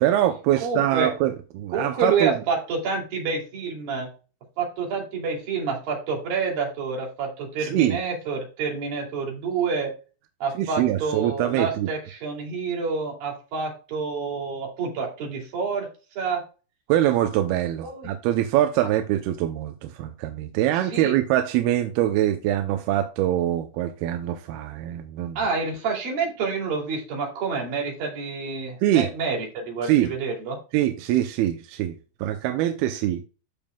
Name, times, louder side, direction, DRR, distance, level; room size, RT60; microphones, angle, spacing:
voice 1, 0.0-2.4 7.6-8.0 10.6-11.9 16.9-25.4 28.8-29.1 29.8-30.1 30.7-31.9 32.2-33.2, right 12 dB, 75° right, 2.4 m, -23 dB
voice 2, 0.6-1.1 1.7-4.1 4.6-9.9 10.4-15.9 16.2-16.4 17.8-18.1 20.9-21.1 25.4-30.6, right 5 dB, 55° right, 4.5 m, -28 dB
14.0 x 5.3 x 2.3 m
omnidirectional pair, 4.9 m